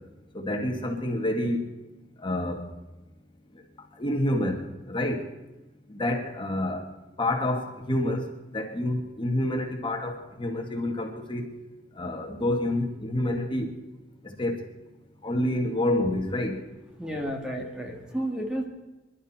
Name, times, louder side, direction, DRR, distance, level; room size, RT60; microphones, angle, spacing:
voice 1, 0.3-1.6 2.2-2.6 4.0-5.2 5.9-6.9 7.2-11.5 12.0-13.7 14.2-14.6 15.2-16.6, left 1 dB, 30° left, 3 dB, 2.1 m, -28 dB
voice 2, 17.0-18.6, right 1 dB, 5° right, 1 dB, 1.7 m, -31 dB
24.5 x 12.0 x 4.4 m, 1.1 s
head